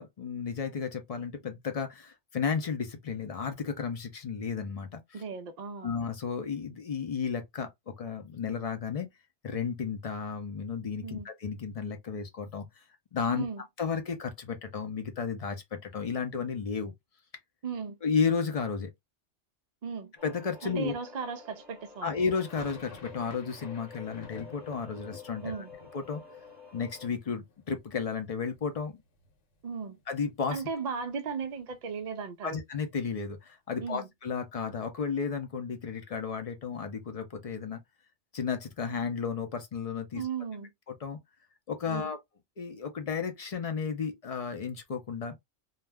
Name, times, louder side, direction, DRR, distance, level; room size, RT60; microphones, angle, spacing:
voice 1, 0.0-5.0 5.8-9.1 9.4-12.6 13.1-13.5 13.8-16.9 18.0-18.9 20.2-20.9 22.0-25.6 25.9-26.2 26.7-29.0 30.1-30.6 32.4-37.8 38.3-40.2 40.9-41.2 41.7-42.2 42.6-45.3, left 6 dB, 45° left, 0.4 m, -33 dB
voice 2, 5.1-5.9 11.0-11.3 13.3-13.6 17.6-18.0 19.8-20.1 20.6-22.1 25.4-25.7 29.6-30.0 30.5-32.6 33.8-34.1 40.1-40.7 41.9-42.1, right 5 dB, 60° right, 0.4 m, -36 dB
sound 1, 20.2-27.1, left 5 dB, ahead, 0.9 m, -50 dB
sound 2, 22.3-28.2 28.5-29.3 29.6-29.7 30.0-32.1, left 3 dB, 80° left, 1.1 m, -52 dB
2.3 x 2.1 x 3.3 m
omnidirectional pair, 1.2 m